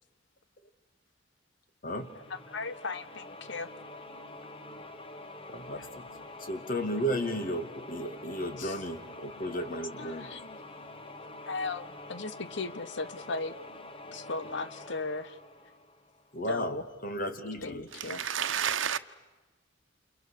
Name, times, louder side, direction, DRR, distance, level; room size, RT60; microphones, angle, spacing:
sound 1, 2.0-16.6, left 2 dB, 30° left, 1.6 m, -46 dB
voice 1, 2.3-3.7 5.7-5.9 8.6-8.8 10.0-10.6 11.4-13.5 14.1-15.4 16.5-16.8 17.6-18.2, left 3 dB, 65° left, 1.1 m, -37 dB
voice 2, 5.5-6.1 6.4-10.3 16.3-17.9 18.2-18.3, equal, 50° left, 2.6 m, -34 dB
voice 3, 18.0-19.0, right 8 dB, 75° right, 1.2 m, -30 dB
29.0 x 29.0 x 6.7 m
head